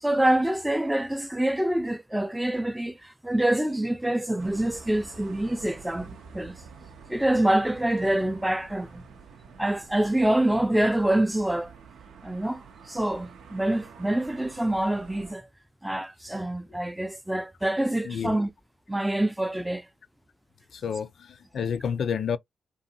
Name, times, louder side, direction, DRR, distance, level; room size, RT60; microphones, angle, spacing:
voice 1, 0.0-6.6 7.1-9.0 9.6-11.7 12.2-15.5 15.8-18.5 18.9-19.9, right 1 dB, 10° right, 0.5 m, -26 dB
sound 1, 4.4-15.3, right 5 dB, 75° right, 0.6 m, -48 dB
voice 2, 18.0-18.4 20.7-22.4, left 7 dB, 65° left, 0.3 m, -30 dB
2.6 x 2.5 x 2.7 m
supercardioid pair, 55°, 0 cm